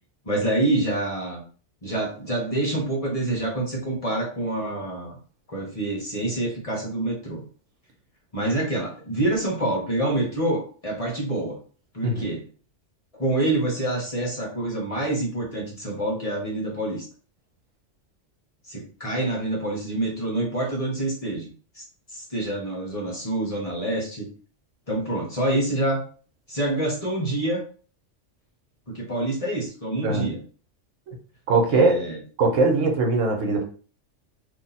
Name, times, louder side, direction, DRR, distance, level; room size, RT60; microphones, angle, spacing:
voice 1, 0.2-1.4 1.8-5.2 5.5-7.4 8.3-11.6 11.9-12.4 13.1-17.0 18.7-21.8 22.1-24.3 24.9-26.0 26.5-27.6 28.9-30.4 31.7-32.2, right 1 dB, 30° left, -1 dB, 0.9 m, -27 dB
voice 2, 31.5-32.0 32.4-33.6, right 3 dB, 75° right, 3 dB, 1.1 m, -21 dB
2.8 x 2.7 x 4.0 m, 0.40 s
omnidirectional pair, 1.3 m